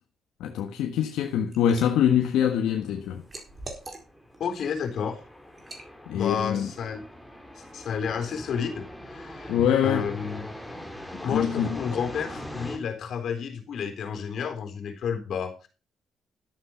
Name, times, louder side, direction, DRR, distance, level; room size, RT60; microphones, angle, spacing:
voice 1, 0.4-3.2 6.1-6.7 9.5-10.0 11.3-11.8, left 9 dB, 85° left, 1.4 m, -24 dB
Liquid, 1.0-1.9 2.3-4.4 4.8-5.0 5.6-5.9, right 2 dB, 30° right, 4.3 m, -43 dB
sound 1, 2.2-12.8, equal, ahead, 3.4 m, -42 dB
voice 2, 4.4-5.2 6.1-7.0 7.5-9.5 9.8-10.5 11.2-15.7, left 7 dB, 65° left, 3.8 m, -31 dB
13.0 x 8.2 x 5.8 m
cardioid pair, 90°, 0 cm